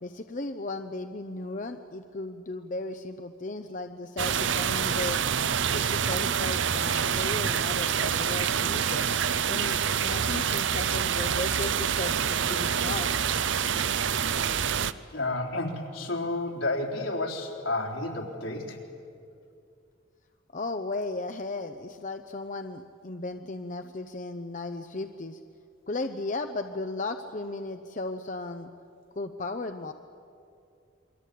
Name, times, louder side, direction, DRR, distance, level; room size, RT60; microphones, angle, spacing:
voice 1, 0.0-5.2 5.6-9.1 9.5-13.1 20.5-25.4 25.9-28.7 29.2-29.9, left 2 dB, 40° left, 7 dB, 0.8 m, -35 dB
sound 1, 4.2-14.9, right 7 dB, 70° right, 0.7 m, -27 dB
voice 2, 15.1-18.8, left 2 dB, 80° left, 1 dB, 3.8 m, -31 dB
28.5 x 23.0 x 8.5 m, 2.5 s
head